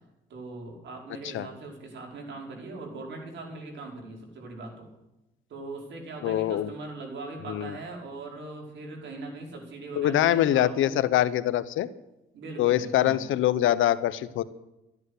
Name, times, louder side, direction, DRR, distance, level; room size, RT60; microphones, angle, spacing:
voice 1, 0.3-4.9 5.5-11.0 12.3-13.2, right 2 dB, 65° right, 1 dB, 5.3 m, -40 dB
voice 2, 6.2-6.7 7.5-7.8 9.9-11.9 12.6-14.4, left 12 dB, 80° left, 15 dB, 0.9 m, -24 dB
14.0 x 11.0 x 8.3 m, 0.96 s
cardioid pair, 90°, 20 cm